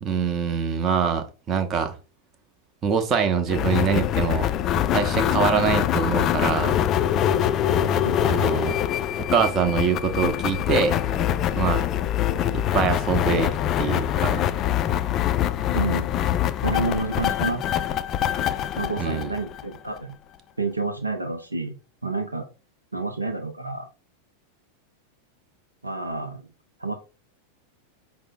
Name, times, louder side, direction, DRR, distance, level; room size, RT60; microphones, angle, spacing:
voice 1, 0.0-2.0 2.8-4.5 4.9-6.8 8.2-8.8 9.2-11.0 11.5-11.9 12.5-14.4 19.0-19.3, right 6 dB, 30° right, 0.7 m, -24 dB
sound 1, 3.5-20.0, left 10 dB, 30° left, 0.3 m, -24 dB
voice 2, 7.8-8.2 15.7-16.1 16.6-17.6 18.8-20.2 20.6-22.5 22.9-23.9 25.8-26.5 26.8-27.0, right 3 dB, 80° right, 0.5 m, -29 dB
5.3 x 2.0 x 3.8 m
figure-of-eight pair, 90°, 0 cm